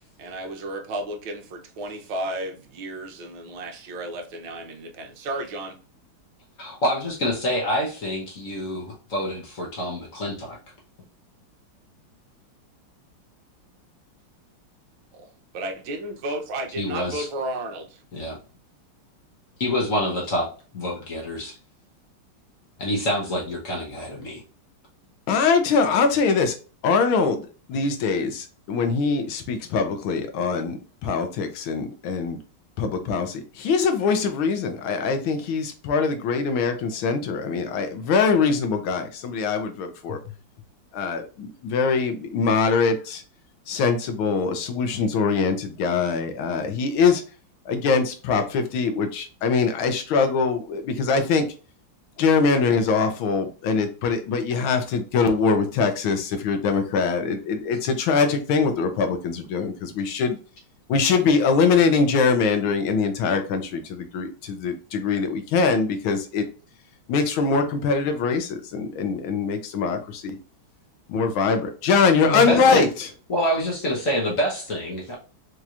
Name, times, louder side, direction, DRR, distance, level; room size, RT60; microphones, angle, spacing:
voice 1, 0.2-5.8 15.1-18.0, right 1 dB, 70° right, 1.5 m, -33 dB
voice 2, 6.6-10.6 16.8-17.3 18.1-18.4 19.6-20.5 20.7-21.5 22.8-24.4 72.2-72.9 73.3-75.1, equal, 50° left, 1.2 m, -26 dB
voice 3, 25.3-26.5 26.8-27.4 27.7-32.4 32.8-40.2 40.9-43.2 43.7-47.2 47.7-51.5 52.2-60.4 60.9-66.5 67.1-70.4 71.1-73.1, left 5 dB, 75° left, 1.5 m, -23 dB
4.7 x 2.8 x 2.4 m
omnidirectional pair, 2.3 m